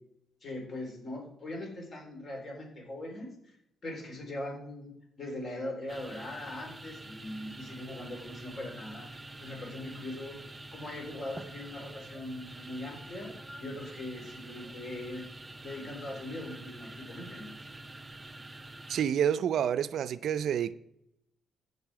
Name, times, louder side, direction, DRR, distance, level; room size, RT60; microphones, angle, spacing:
voice 1, 0.4-3.6 3.8-13.3 13.6-15.2 15.6-17.7, left 1 dB, 50° left, 3.8 m, -41 dB
sound 1, 5.9-19.1, right 2 dB, 15° right, 0.7 m, -47 dB
voice 2, 18.9-20.7, right 9 dB, 65° right, 0.4 m, -28 dB
15.0 x 5.4 x 4.8 m
cardioid pair, 90°, 0 cm